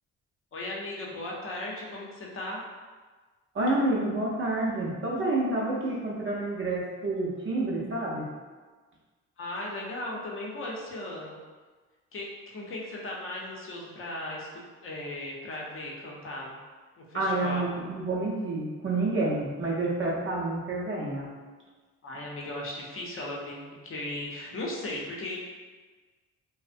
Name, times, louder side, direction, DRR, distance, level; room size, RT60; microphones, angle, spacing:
voice 1, 0.5-2.7 9.4-11.4 12.1-16.6 17.0-17.7 22.0-25.4, left 1 dB, 45° left, -3 dB, 0.7 m, -37 dB
voice 2, 3.5-8.3 17.1-21.3, right 2 dB, 40° right, -4 dB, 0.6 m, -29 dB
2.5 x 2.0 x 2.5 m, 1.4 s
cardioid pair, 90°, 30 cm